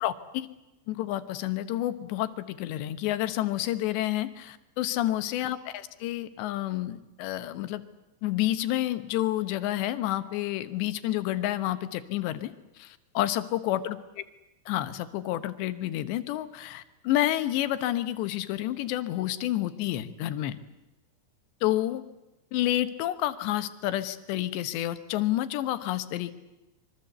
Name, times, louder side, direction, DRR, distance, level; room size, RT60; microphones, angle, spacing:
voice 1, 0.0-0.5 0.9-5.6 6.0-7.8 8.2-14.0 14.7-20.6 21.6-22.0 22.5-26.3, left 14 dB, 75° left, 12 dB, 3.3 m, -29 dB
25.0 x 24.0 x 8.1 m, 0.98 s
omnidirectional pair, 5.3 m